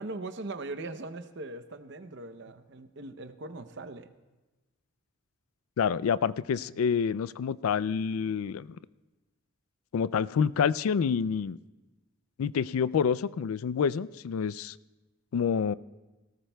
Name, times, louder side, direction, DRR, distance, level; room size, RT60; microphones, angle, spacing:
voice 1, 0.0-4.1, right 2 dB, 55° right, 10 dB, 0.7 m, -40 dB
voice 2, 5.8-8.7 9.9-11.6 12.4-14.7 15.3-15.7, left 6 dB, 85° left, 18 dB, 0.4 m, -27 dB
18.5 x 18.5 x 2.3 m, 1.1 s
head